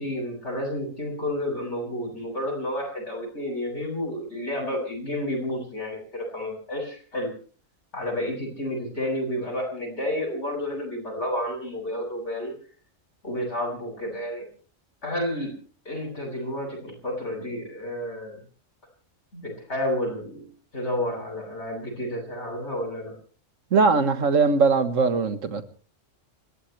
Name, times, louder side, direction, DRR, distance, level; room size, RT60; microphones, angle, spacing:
voice 1, 0.0-7.3 7.9-12.5 13.2-14.4 15.0-15.5 15.8-18.4 19.3-20.4 20.7-23.1, left 1 dB, 65° left, 7.7 m, -30 dB
voice 2, 23.7-25.6, right 4 dB, 90° right, 1.8 m, -20 dB
30.0 x 14.0 x 3.3 m
omnidirectional pair, 1.3 m